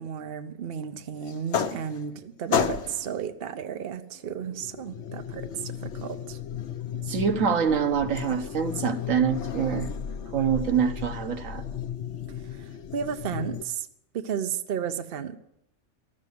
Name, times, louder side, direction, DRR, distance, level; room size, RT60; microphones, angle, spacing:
voice 1, 0.0-6.4 12.5-13.9 14.1-15.4, right 8 dB, 50° right, 10 dB, 0.9 m, -33 dB
sound 1, 1.3-2.2 2.5-3.2 4.3-13.6, left 8 dB, 65° left, 1.0 m, -33 dB
voice 2, 6.9-9.9 10.3-11.6, right 7 dB, 85° right, 9 dB, 1.4 m, -25 dB
13.0 x 7.6 x 9.3 m, 0.77 s
omnidirectional pair, 1.3 m